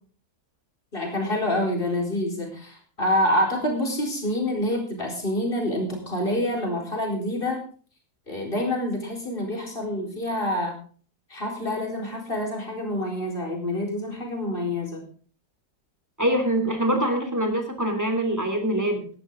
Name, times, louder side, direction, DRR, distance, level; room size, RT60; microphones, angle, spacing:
voice 1, 0.9-7.6 8.3-10.8 11.3-15.0, left 1 dB, 35° left, 1 dB, 4.5 m, -27 dB
voice 2, 16.2-19.1, right 1 dB, 10° right, 4 dB, 3.0 m, -24 dB
17.0 x 11.5 x 3.8 m, 0.42 s
omnidirectional pair, 1.6 m